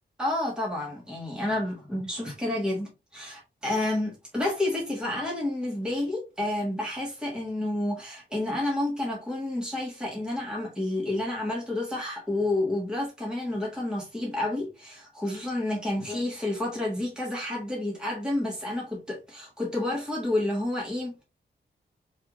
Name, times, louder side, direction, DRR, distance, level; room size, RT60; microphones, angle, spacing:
voice 1, 0.2-21.2, left 1 dB, 5° right, 1.4 m, -30 dB
4.5 x 3.4 x 2.4 m
wide cardioid pair, 135°, 19 cm